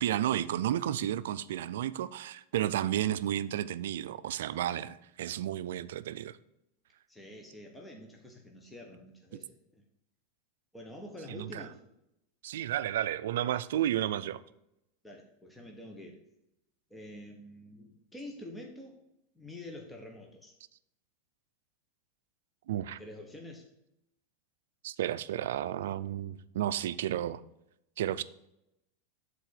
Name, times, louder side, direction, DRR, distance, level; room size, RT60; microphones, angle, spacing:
voice 1, 0.0-6.4 11.3-11.6 12.4-14.4 22.7-23.0 24.8-27.4 28.0-28.2, right 12 dB, 80° right, 0.4 m, -32 dB
voice 2, 7.1-9.8 10.7-11.8 15.0-16.2 16.9-19.0 19.3-20.5 23.0-23.7, left 1 dB, 10° left, 1.2 m, -47 dB
7.5 x 4.1 x 6.7 m
supercardioid pair, 125°, 0 cm